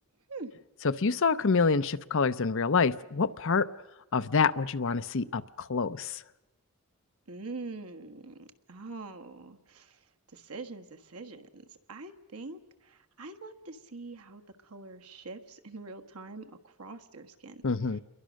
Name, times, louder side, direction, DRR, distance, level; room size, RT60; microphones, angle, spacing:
voice 1, 1.0-3.7 4.1-6.2 17.6-18.0, left 4 dB, 60° left, 13 dB, 0.7 m, -27 dB
voice 2, 7.3-18.0, right 3 dB, 80° right, 6 dB, 1.6 m, -44 dB
28.0 x 22.5 x 6.5 m, 1.1 s
head